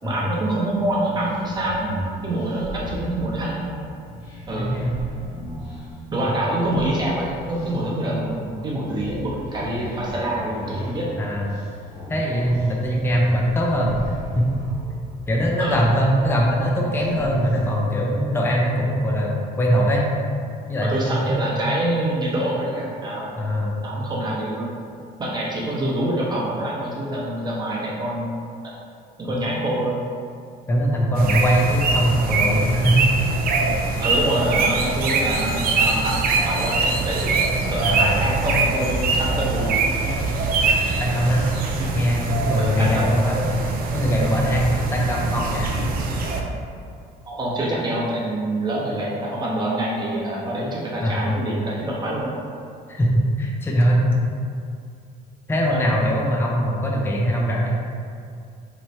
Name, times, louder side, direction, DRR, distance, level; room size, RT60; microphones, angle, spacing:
voice 1, 0.0-1.9 2.2-3.8 4.5-4.7 6.1-11.2 15.6-15.9 20.8-23.3 23.8-24.7 25.2-28.3 29.2-30.0 34.0-40.0 41.8-41.9 42.6-43.2 47.2-52.3 55.7-55.8, right 1 dB, 25° right, -5 dB, 0.9 m, -26 dB
sound 1, 0.9-18.1, equal, 90° left, 1.5 m, -37 dB
voice 2, 4.6-5.0 11.2-11.6 12.1-14.6 15.3-20.0 20.7-21.4 23.4-23.7 30.7-33.0 37.8-38.2 41.0-41.4 41.9-43.5 43.9-45.7 51.0-51.4 52.9-54.2 55.5-57.7, equal, 15° left, -2 dB, 0.5 m, -21 dB
sound 2, 31.1-46.4, right 3 dB, 60° right, 0.4 m, -23 dB
3.1 x 2.2 x 4.1 m, 2.4 s
cardioid pair, 110°, 17 cm